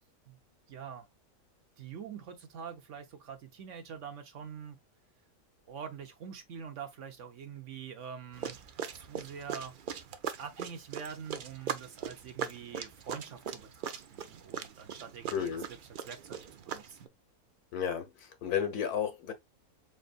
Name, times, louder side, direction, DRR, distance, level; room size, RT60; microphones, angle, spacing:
voice 1, 0.7-1.1 1.8-4.8 5.7-8.6 8.9-9.7 10.4-15.6 16.0-16.4 16.7-17.1, right 7 dB, 60° right, 1.0 m, -45 dB
sound 1, 8.3-17.1, right 7 dB, 75° right, 0.4 m, -40 dB
voice 2, 15.3-15.6 17.7-19.3, left 8 dB, 80° left, 1.5 m, -32 dB
4.5 x 3.8 x 2.4 m
omnidirectional pair, 1.6 m